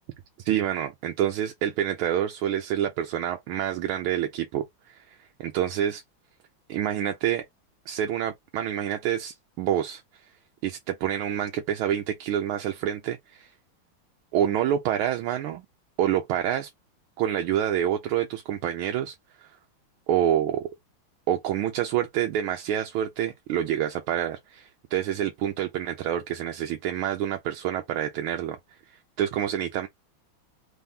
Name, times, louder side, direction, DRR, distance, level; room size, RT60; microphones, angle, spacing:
voice 1, 0.4-6.0 6.7-7.4 7.9-10.0 10.6-13.5 14.3-15.6 16.0-16.7 17.2-19.5 20.1-20.7 21.3-29.9, right 10 dB, 85° right, 1.5 m, -27 dB
3.9 x 3.5 x 2.7 m
omnidirectional pair, 2.3 m